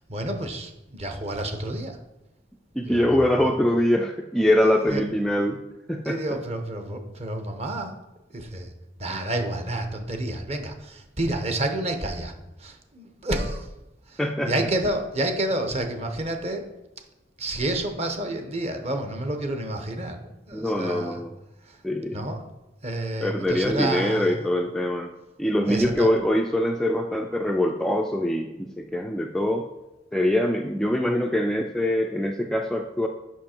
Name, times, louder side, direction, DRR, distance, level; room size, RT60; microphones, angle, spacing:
voice 1, 0.0-2.0 2.8-3.6 4.6-5.0 6.0-7.9 8.3-8.7 9.0-13.7 14.1-16.6 17.4-21.2 21.6-21.8 22.1-22.4 22.8-24.4 25.6-26.1, right 1 dB, 35° right, 6 dB, 0.9 m, -30 dB
voice 2, 2.8-6.2 14.2-14.5 20.5-21.3 21.8-22.2 23.2-25.1 25.4-29.7 30.1-33.1, left 1 dB, 5° left, 2 dB, 0.3 m, -23 dB
7.4 x 5.6 x 4.4 m, 1.0 s
head